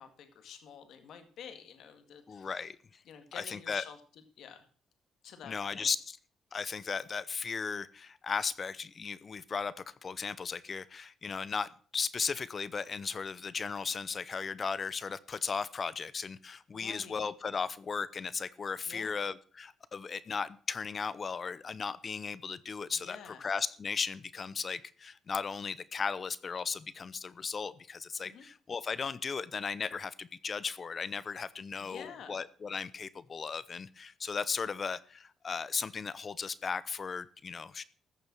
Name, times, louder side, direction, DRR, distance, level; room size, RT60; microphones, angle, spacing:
voice 1, 0.0-2.7 3.1-4.7 5.2-5.9 16.7-17.2 18.8-19.2 22.9-23.4 28.2-28.5 31.8-32.4, left 7 dB, 75° left, 7 dB, 2.0 m, -49 dB
voice 2, 2.3-2.8 3.4-3.8 5.5-6.2 6.5-37.8, left 5 dB, 40° left, 17 dB, 0.7 m, -36 dB
14.5 x 6.8 x 6.1 m, 0.43 s
cardioid pair, 90°, 0 cm